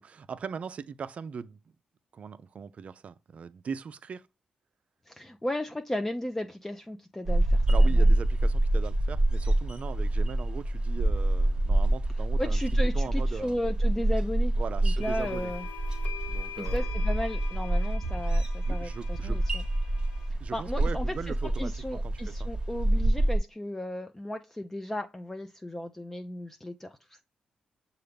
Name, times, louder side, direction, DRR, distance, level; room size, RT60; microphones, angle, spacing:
voice 1, 0.0-1.6 2.1-4.3 7.7-13.6 14.6-15.5 16.3-16.9 18.7-19.4 20.4-22.5, right 6 dB, 55° right, 0.4 m, -40 dB
voice 2, 5.1-8.1 12.4-14.5 14.8-15.7 16.6-19.6 20.5-27.2, left 1 dB, 15° left, 0.4 m, -35 dB
sound 1, 7.2-23.4, right 1 dB, 35° right, 0.9 m, -26 dB
sound 2, 15.0-20.3, left 9 dB, 85° left, 0.4 m, -44 dB
6.4 x 2.3 x 3.3 m
cardioid pair, 60°, 3 cm